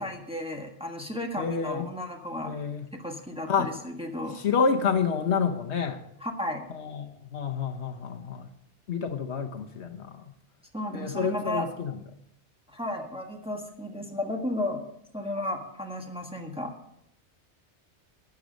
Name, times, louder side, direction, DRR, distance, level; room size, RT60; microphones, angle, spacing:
voice 1, 0.0-2.5 2.9-4.4 6.2-6.7 10.7-11.7 12.7-14.8 15.1-16.7, left 1 dB, 5° right, 1 dB, 1.4 m, -33 dB
voice 2, 1.4-1.9 2.4-2.9 3.5-3.7 4.3-6.1 6.7-8.5 8.9-10.3 10.9-12.0, left 6 dB, 70° left, 6 dB, 1.2 m, -29 dB
13.5 x 9.5 x 5.2 m, 0.75 s
omnidirectional pair, 1.2 m